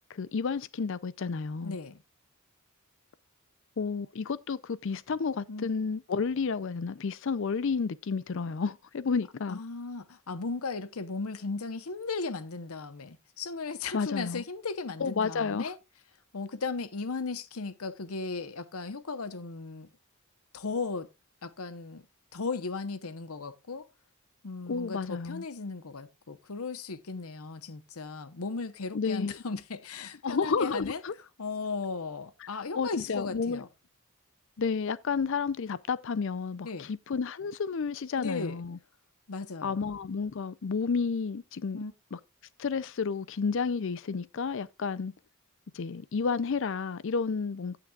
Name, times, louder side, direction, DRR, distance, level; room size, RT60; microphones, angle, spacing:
voice 1, 0.1-1.8 3.8-9.6 13.9-14.4 15.0-15.7 24.7-25.4 28.9-29.3 30.2-31.1 32.5-33.6 34.6-38.8 39.6-41.8 42.1-42.2 42.6-45.1 45.7-47.8, left 5 dB, 55° left, 0.4 m, -31 dB
voice 2, 1.6-2.0 5.5-5.7 9.5-15.8 16.3-19.9 20.5-21.1 21.4-22.0 22.3-23.9 24.4-31.0 31.4-33.7 36.6-36.9 38.2-38.6 39.3-39.8 41.7-41.9, left 4 dB, 75° left, 0.9 m, -36 dB
17.0 x 6.0 x 2.4 m
head